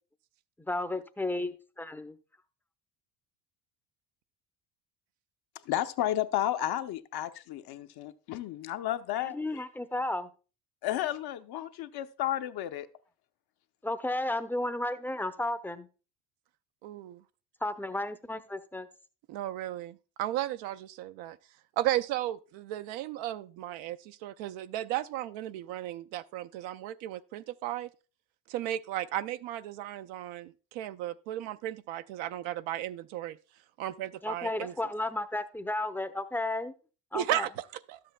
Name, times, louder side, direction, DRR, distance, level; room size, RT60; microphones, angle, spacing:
voice 1, 0.6-2.2 9.3-10.3 13.8-15.9 17.6-18.9 34.2-36.7 37.1-37.5, left 2 dB, 5° left, 0.6 m, -33 dB
voice 2, 5.7-9.6 10.8-12.9, left 12 dB, 50° left, 0.7 m, -32 dB
voice 3, 16.8-17.2 19.3-21.4 21.8-27.9 28.5-33.4 33.8-34.7 37.1-38.0, right 13 dB, 65° right, 0.6 m, -35 dB
12.0 x 7.8 x 2.2 m
hypercardioid pair, 70°, 50 cm